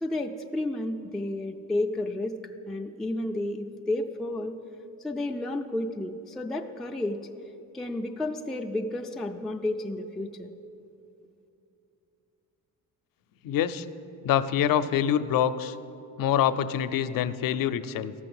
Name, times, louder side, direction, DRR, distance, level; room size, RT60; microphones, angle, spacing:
voice 1, 0.0-2.3 2.7-4.6 5.0-7.3 7.7-10.5, left 1 dB, ahead, 1 dB, 0.4 m, -31 dB
voice 2, 13.4-13.9 14.2-15.8 16.2-18.1, left 9 dB, 75° left, 12 dB, 0.6 m, -25 dB
13.5 x 6.2 x 7.7 m, 2.8 s
cardioid pair, 140°, 34 cm